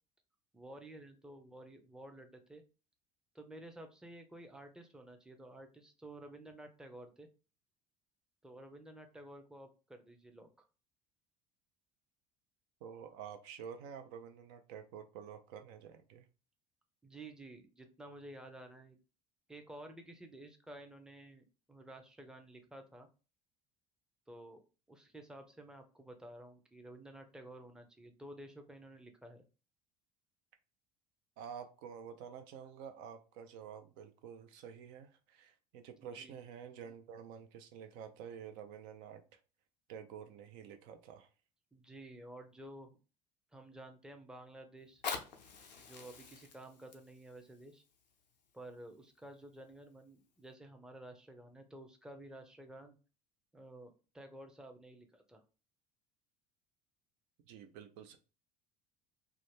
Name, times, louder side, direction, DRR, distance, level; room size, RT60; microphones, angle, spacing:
voice 1, 0.5-2.6 3.3-7.3 8.4-10.7 17.0-19.0 19.5-23.1 24.3-24.6 24.9-29.5 36.0-36.4 41.7-43.0 43.5-45.0 45.8-47.8 48.5-53.0 53.5-55.4, right 1 dB, 5° right, 5 dB, 0.5 m, -52 dB
voice 2, 12.8-16.2 31.4-39.4 39.9-41.3 57.5-58.2, right 7 dB, 60° right, 6 dB, 0.5 m, -49 dB
Fire, 44.8-49.7 50.4-50.5, left 5 dB, 85° left, 0.5 m, -47 dB
2.4 x 2.1 x 3.3 m, 0.34 s
figure-of-eight pair, 65°, 21 cm